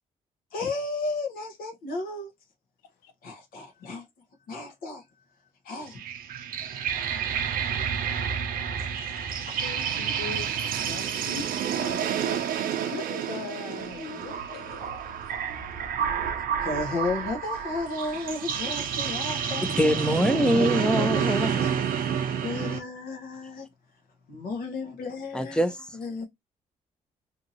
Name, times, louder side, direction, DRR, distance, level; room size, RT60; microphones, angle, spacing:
voice 1, 0.5-2.3 3.2-4.0 4.5-5.0 5.6-6.0 16.2-19.6 20.5-21.8 22.4-23.7 24.3-25.6 25.9-26.3, left 3 dB, 70° left, 0.9 m, -33 dB
sound 1, 5.9-22.8, right 8 dB, 70° right, 0.5 m, -29 dB
voice 2, 9.6-15.1, left 8 dB, 90° left, 0.5 m, -41 dB
voice 3, 19.8-21.6 25.3-25.9, equal, 5° left, 0.5 m, -24 dB
2.8 x 2.6 x 2.6 m
supercardioid pair, 65°, 15 cm